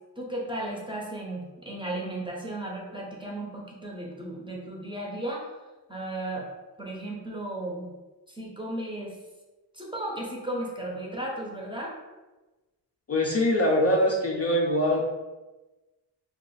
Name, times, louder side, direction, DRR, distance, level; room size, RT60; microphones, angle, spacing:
voice 1, 0.2-5.5 5.9-6.5 6.8-7.9 8.3-9.1 9.7-11.9, right 1 dB, 10° right, -2 dB, 0.6 m, -35 dB
voice 2, 13.1-15.1, left 1 dB, 35° left, -2 dB, 0.4 m, -23 dB
2.8 x 2.5 x 3.8 m, 1.1 s
wide cardioid pair, 125°, 42 cm